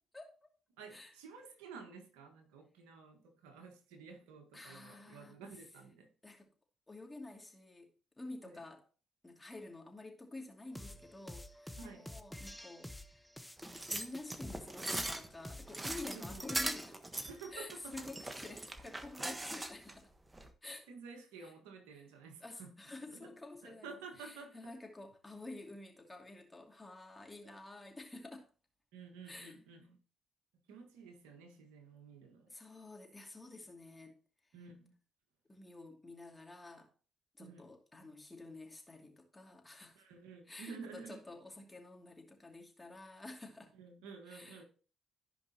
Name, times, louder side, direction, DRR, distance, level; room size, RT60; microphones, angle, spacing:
voice 1, 0.8-6.1 8.4-8.6 11.8-12.1 16.1-16.5 17.3-18.1 18.4-18.5 18.8-19.3 20.9-22.8 23.1-24.8 27.4-27.5 28.9-30.0 30.7-32.5 34.5-34.9 37.4-37.7 39.9-41.2 43.7-44.6, right 5 dB, 85° right, 1.6 m, -52 dB
voice 2, 4.5-5.4 6.2-6.5 6.9-7.9 8.2-8.8 9.2-13.3 13.9-17.0 17.5-20.1 20.6-20.9 21.4-21.5 22.4-28.5 29.3-29.6 32.5-34.2 35.5-36.9 37.4-40.1 40.5-43.7 44.3-44.6, left 2 dB, 20° left, 2.6 m, -50 dB
sound 1, 10.7-16.9, left 1 dB, ahead, 1.1 m, -49 dB
sound 2, 13.6-19.9 20.3-20.5, right 2 dB, 20° right, 1.4 m, -40 dB
15.0 x 5.3 x 2.9 m
hypercardioid pair, 50°, 0 cm